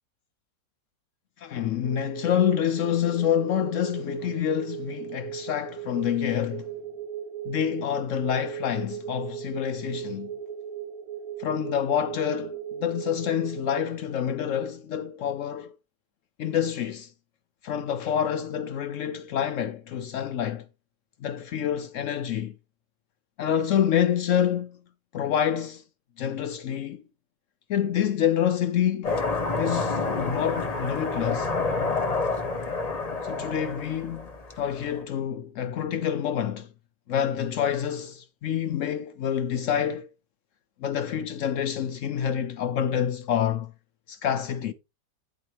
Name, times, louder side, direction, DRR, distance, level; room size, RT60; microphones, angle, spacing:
voice 1, 1.4-6.7 7.5-10.3 11.4-15.7 16.4-17.1 17.6-20.6 21.2-22.5 23.4-24.8 25.1-25.8 26.2-27.0 27.7-29.2 29.6-31.5 33.2-34.3 34.6-36.7 37.1-40.1 40.8-43.7 44.1-44.7, left 9 dB, 75° left, 0.7 m, -27 dB
sound 1, 1.8-13.8, right 9 dB, 65° right, 1.0 m, -38 dB
sound 2, 29.0-35.0, left 3 dB, 30° left, 0.9 m, -29 dB
11.5 x 4.3 x 3.3 m
omnidirectional pair, 1.8 m